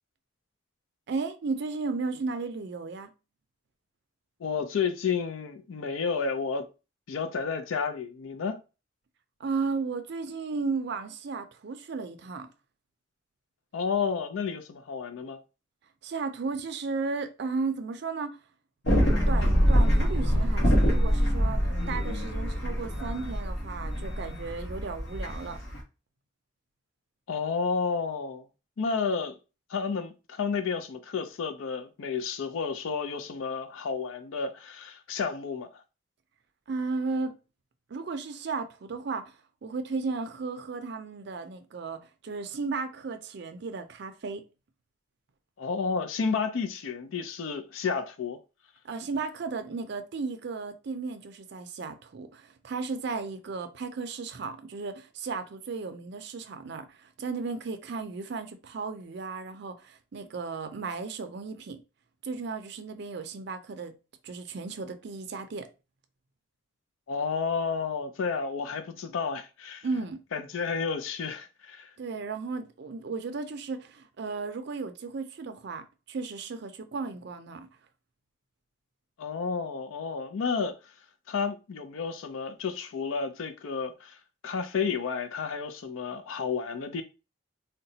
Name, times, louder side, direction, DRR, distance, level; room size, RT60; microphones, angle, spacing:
voice 1, 1.1-3.1 9.4-12.5 16.0-18.4 19.3-25.6 36.7-37.3 37.9-39.4 39.6-44.4 48.8-61.8 62.2-63.9 64.2-65.7 69.8-70.2 72.0-77.7, right 4 dB, 60° right, 0.4 m, -34 dB
voice 2, 4.4-6.7 7.1-8.6 13.7-15.4 27.3-28.5 28.8-29.4 29.7-35.8 45.6-48.4 67.1-69.9 70.3-71.9 79.2-80.9 81.3-87.0, left 5 dB, 85° left, 0.4 m, -31 dB
sound 1, 18.8-25.8, equal, 60° left, 1.3 m, -25 dB
3.8 x 2.1 x 2.7 m
head